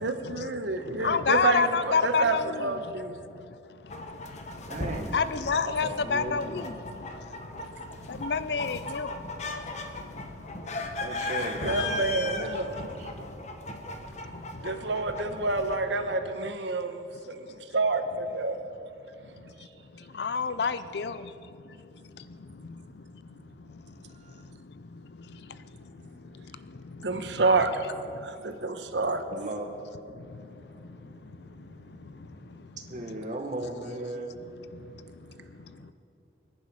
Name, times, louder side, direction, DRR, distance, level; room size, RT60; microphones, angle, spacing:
voice 1, 0.0-3.2 11.6-12.7 14.6-17.0 17.3-18.6 27.0-27.7 28.2-29.2, right 3 dB, 80° right, 7 dB, 1.2 m, -28 dB
voice 2, 1.0-2.6 5.1-6.6 8.2-9.1 20.2-21.1, left 5 dB, 65° left, 13 dB, 0.5 m, -26 dB
sound 1, 3.9-15.8, left 2 dB, 40° left, 1.1 m, -37 dB
voice 3, 4.7-5.1 5.7-6.7 11.0-13.3 29.3-29.7 32.9-34.3, right 1 dB, 45° right, 3 dB, 1.7 m, -37 dB
23.5 x 10.5 x 5.4 m, 2.7 s
head